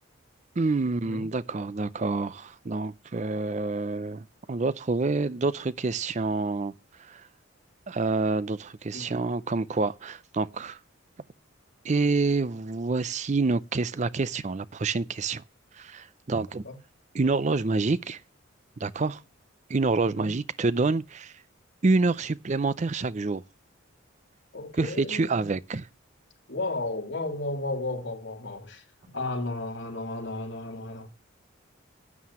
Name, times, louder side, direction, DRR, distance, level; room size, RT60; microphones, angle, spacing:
voice 1, 0.6-6.7 7.0-7.3 7.9-10.8 11.8-15.4 15.7-16.6 17.1-18.2 18.8-19.2 19.7-21.4 21.8-23.4 24.7-25.9, right 3 dB, 35° right, 0.5 m, -27 dB
voice 2, 24.5-25.5 26.5-31.1, left 2 dB, 60° left, 3.3 m, -34 dB
14.5 x 9.5 x 2.9 m
head